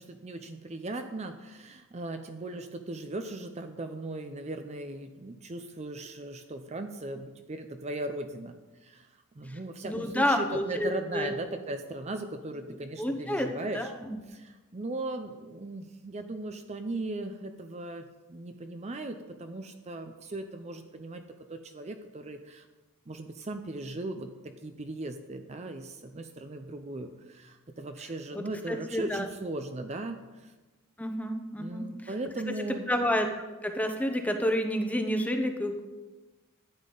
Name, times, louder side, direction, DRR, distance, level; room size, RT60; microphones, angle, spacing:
voice 1, 0.0-9.1 9.4-13.9 14.3-21.2 21.5-22.6 23.1-30.5 31.6-32.9, right 2 dB, 30° right, 7 dB, 0.5 m, -38 dB
voice 2, 9.8-11.3 13.0-13.5 13.7-14.2 28.3-29.3 31.0-31.9 32.5-32.6 32.9-35.8, equal, 5° left, 5 dB, 0.8 m, -29 dB
13.0 x 9.3 x 3.9 m, 1.2 s
head